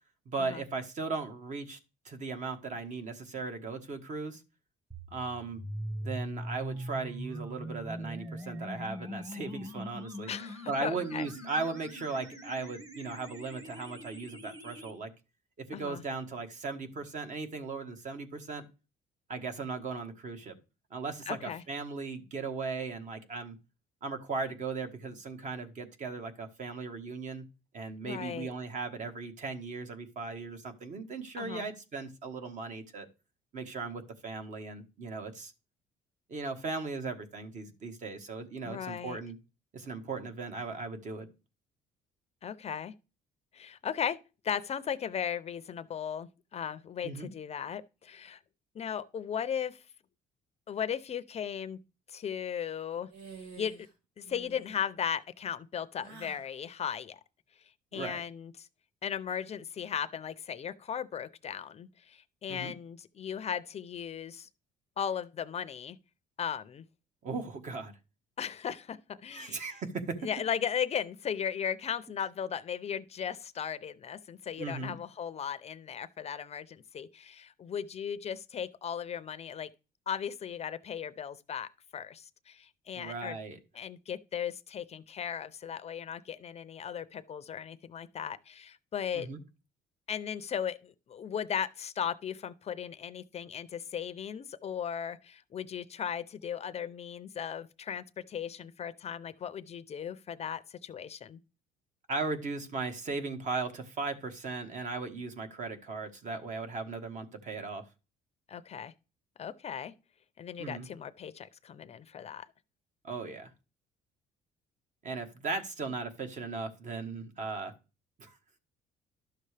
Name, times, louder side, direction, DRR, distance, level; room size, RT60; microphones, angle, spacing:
voice 1, 0.2-1.8 2.0-4.4 5.1-5.6 6.0-10.3 10.7-15.1 15.6-18.6 19.3-20.6 20.9-23.6 24.0-27.5 27.7-33.1 33.5-35.5 36.3-39.4 39.7-41.3 47.0-47.3 57.9-58.2 62.5-62.7 67.2-67.9 69.3-70.3 74.6-74.9 83.0-83.6 89.1-89.4 102.1-107.8 110.6-110.9 113.0-113.5 115.0-117.7 118.2-118.3, right 4 dB, 45° right, 1.4 m, -37 dB
sound 1, 4.9-14.9, equal, 20° right, 1.3 m, -42 dB
voice 2, 10.3-11.3 15.7-16.0 21.3-21.6 28.0-28.5 31.4-31.6 38.6-39.2 42.4-42.9 43.5-44.2 44.4-48.4 48.7-49.8 50.7-51.8 52.1-53.1 53.6-53.7 54.2-57.2 57.9-58.7 59.0-64.5 65.0-66.0 66.4-66.8 68.4-69.6 70.2-79.7 80.1-83.4 83.7-89.3 90.1-101.4 108.5-108.9 109.4-109.9 110.4-112.5, left 8 dB, 40° left, 0.5 m, -37 dB
sound 2, 53.1-53.9 54.2-54.8 56.0-56.5, right 4 dB, 90° right, 1.8 m, -49 dB
12.0 x 6.6 x 3.3 m
cardioid pair, 110°, 17 cm